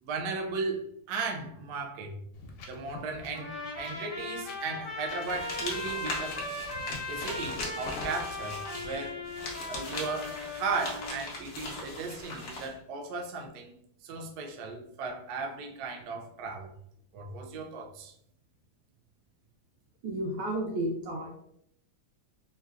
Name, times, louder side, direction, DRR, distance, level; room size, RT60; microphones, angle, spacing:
voice 1, 0.0-2.2 2.6-6.4 7.1-9.2 9.7-13.7 14.0-16.7 17.1-18.1, right 4 dB, 75° right, 0.9 m, -36 dB
Wind, 2.3-12.2, left 3 dB, 80° left, 1.3 m, -51 dB
Trumpet, 3.3-11.2, left 2 dB, 35° left, 0.4 m, -38 dB
sound 1, 5.2-12.7, left 2 dB, 60° left, 0.8 m, -39 dB
voice 2, 20.0-21.3, right 1 dB, 90° right, 1.7 m, -32 dB
3.8 x 2.2 x 2.4 m
omnidirectional pair, 2.1 m